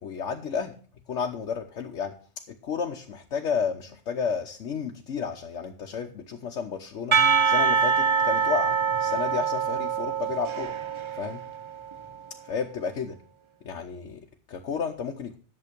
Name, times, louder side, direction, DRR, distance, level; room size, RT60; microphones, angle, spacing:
voice 1, 0.0-0.8 1.1-2.1 2.5-7.2 7.4-10.7 11.1-11.4 12.4-13.2 13.6-15.4, left 6 dB, 85° left, 2 dB, 1.2 m, -32 dB
Percussion / Church bell, 7.1-12.1, right 6 dB, 45° right, 0.4 m, -25 dB
11.0 x 7.4 x 5.1 m, 0.42 s
omnidirectional pair, 1.2 m